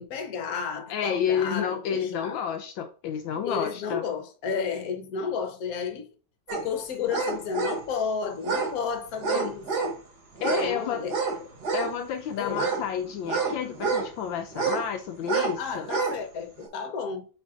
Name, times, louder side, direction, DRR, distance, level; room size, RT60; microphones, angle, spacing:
voice 1, 0.0-2.4 3.4-6.1 6.5-9.9 10.4-11.2 12.4-12.7 15.6-17.2, left 6 dB, 50° left, 1.3 m, -32 dB
voice 2, 0.9-4.0 9.3-9.5 10.4-11.1 11.7-15.9, left 8 dB, 75° left, 1.3 m, -30 dB
sound 1, 6.5-6.6 7.1-7.8 8.4-8.7 9.2-10.0 10.4-10.7 11.1-11.9 12.5-14.1 14.5-14.9 15.2-15.6 15.8-16.2 16.6-16.7, right 5 dB, 55° right, 1.9 m, -28 dB
8.5 x 3.4 x 3.7 m
omnidirectional pair, 2.2 m